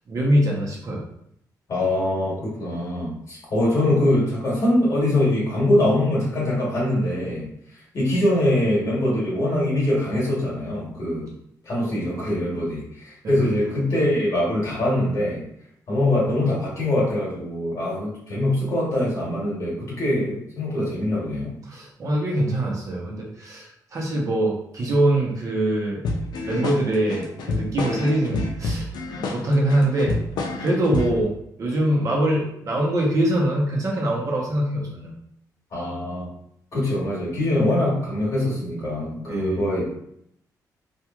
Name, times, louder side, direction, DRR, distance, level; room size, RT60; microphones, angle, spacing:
voice 1, 0.1-1.0 13.2-13.4 21.6-26.0 26.4-28.9 29.3-30.2 30.6-31.3 31.6-35.1 39.3-39.6, right 1 dB, 50° right, -3 dB, 0.8 m, -23 dB
voice 2, 1.7-7.5 7.9-11.3 11.6-15.4 15.9-21.6 35.7-36.3 36.7-39.9, left 1 dB, 50° left, -6 dB, 1.2 m, -23 dB
sound 1, 26.0-31.2, left 3 dB, 90° left, 0.4 m, -28 dB
3.0 x 2.4 x 2.4 m, 0.73 s
cardioid pair, 120°, 7 cm